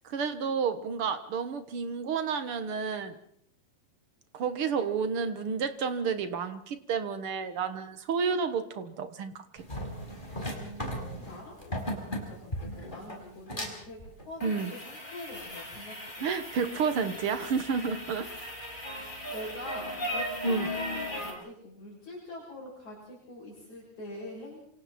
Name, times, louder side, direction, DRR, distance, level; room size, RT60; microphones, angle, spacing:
voice 1, 0.0-3.2 4.3-9.6 14.4-14.7 16.2-18.5 20.4-20.7, right 6 dB, 60° right, 10 dB, 1.4 m, -31 dB
sound 1, 9.6-21.3, left 1 dB, 10° left, 5.2 m, -37 dB
voice 2, 10.6-16.1 17.8-18.0 18.9-24.6, left 1 dB, 45° left, -6 dB, 8.7 m, -44 dB
28.0 x 27.0 x 4.4 m, 0.68 s
omnidirectional pair, 4.5 m